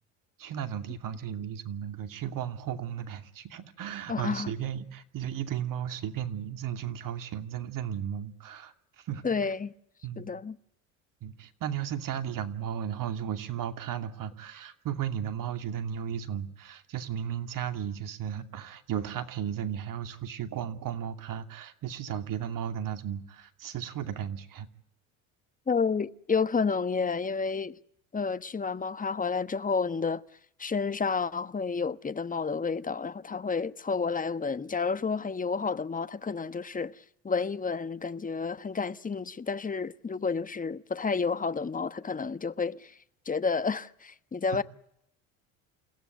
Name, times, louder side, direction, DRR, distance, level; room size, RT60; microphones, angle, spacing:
voice 1, 0.4-9.5 10.0-10.3 11.2-24.7 44.5-44.6, right 9 dB, 55° right, 2.7 m, -35 dB
voice 2, 4.1-4.5 9.2-9.7 10.2-10.6 25.7-27.7 28.1-30.2 30.6-36.9 37.2-42.9 43.2-44.6, left 5 dB, 20° left, 1.2 m, -30 dB
28.5 x 16.0 x 9.4 m
hypercardioid pair, 70°, 39 cm